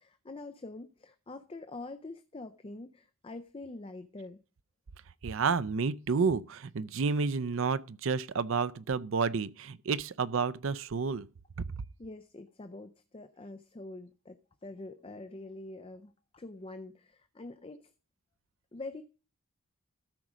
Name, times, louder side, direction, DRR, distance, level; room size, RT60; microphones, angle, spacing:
voice 1, 0.0-4.4 12.0-17.9 18.7-19.0, left 2 dB, 25° left, 0.5 m, -45 dB
voice 2, 5.2-11.3, right 5 dB, 65° right, 0.5 m, -30 dB
13.5 x 5.0 x 6.2 m
head